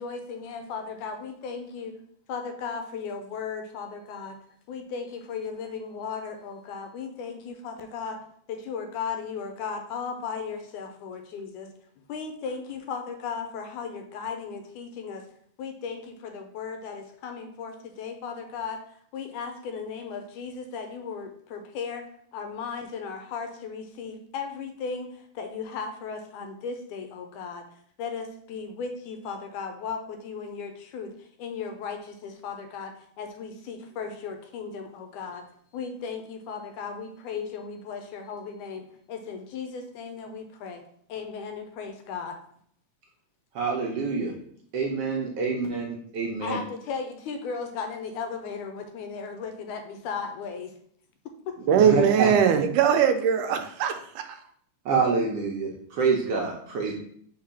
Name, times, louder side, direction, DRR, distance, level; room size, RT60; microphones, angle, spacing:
voice 1, 0.0-2.0 2.3-4.4 4.7-8.2 8.5-11.7 12.1-15.2 15.6-22.1 22.3-27.7 28.0-35.4 35.7-40.8 41.1-42.3 46.4-50.7, left 5 dB, 80° left, 5 dB, 2.2 m, -36 dB
voice 2, 43.5-44.3 44.7-45.9 46.1-46.6 51.7-52.3 54.8-56.9, right 4 dB, 70° right, -1 dB, 1.5 m, -26 dB
voice 3, 51.7-54.4, right 8 dB, 90° right, 7 dB, 2.1 m, -21 dB
5.0 x 3.8 x 5.6 m, 0.63 s
omnidirectional pair, 3.6 m